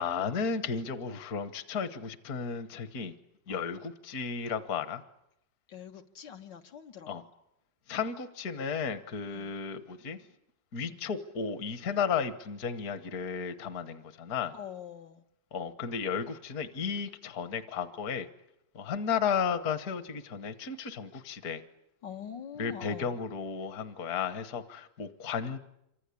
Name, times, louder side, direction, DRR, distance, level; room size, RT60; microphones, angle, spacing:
voice 1, 0.0-3.1 3.5-5.0 7.1-7.2 7.9-10.2 10.7-14.5 15.5-18.3 18.7-21.6 22.6-25.6, left 6 dB, 60° left, 11 dB, 1.6 m, -34 dB
voice 2, 5.7-7.3 9.3-9.6 10.9-11.1 14.5-15.2 22.0-23.2, left 8 dB, 85° left, 4 dB, 2.1 m, -45 dB
27.0 x 25.0 x 8.4 m, 0.83 s
omnidirectional pair, 1.9 m